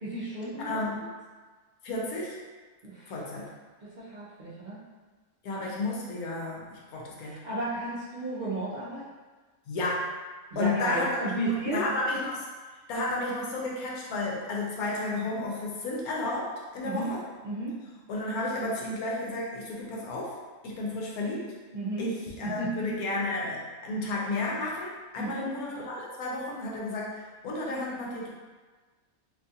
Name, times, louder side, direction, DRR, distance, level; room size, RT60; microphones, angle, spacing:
voice 1, 0.0-0.8 2.8-3.1 3.8-4.8 7.3-9.0 10.5-11.8 16.8-17.1 17.4-17.8 21.7-22.1 22.4-22.9 25.2-25.5, right 2 dB, 90° right, -10 dB, 0.4 m, -33 dB
voice 2, 0.6-1.0 1.8-2.4 3.1-3.5 5.4-7.4 9.7-10.1 10.6-11.1 11.5-17.2 18.1-20.4 20.6-21.5 22.0-28.3, left 2 dB, 80° left, -3 dB, 1.1 m, -32 dB
2.8 x 2.3 x 2.7 m, 1.3 s
omnidirectional pair, 1.5 m